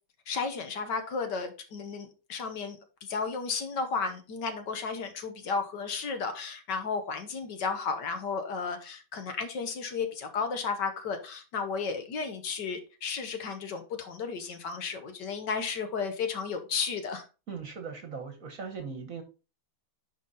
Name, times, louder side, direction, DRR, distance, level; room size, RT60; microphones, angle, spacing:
voice 1, 0.3-17.3, left 5 dB, 65° left, 1.7 m, -33 dB
voice 2, 17.5-19.2, right 5 dB, 50° right, 1.4 m, -39 dB
10.5 x 4.0 x 4.1 m
omnidirectional pair, 2.1 m